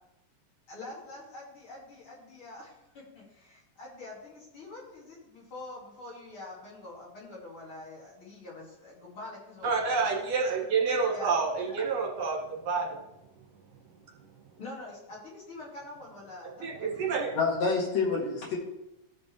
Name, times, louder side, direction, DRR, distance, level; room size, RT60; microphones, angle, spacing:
voice 1, 0.7-10.1 11.1-11.8 14.6-17.5, left 2 dB, 45° left, -4 dB, 2.9 m, -45 dB
voice 2, 9.6-12.4 12.6-13.0 16.6-17.3, right 4 dB, 60° right, -2 dB, 2.6 m, -28 dB
voice 3, 17.3-18.6, left 4 dB, 65° left, -3 dB, 3.0 m, -27 dB
15.0 x 5.2 x 3.3 m, 0.90 s
omnidirectional pair, 3.4 m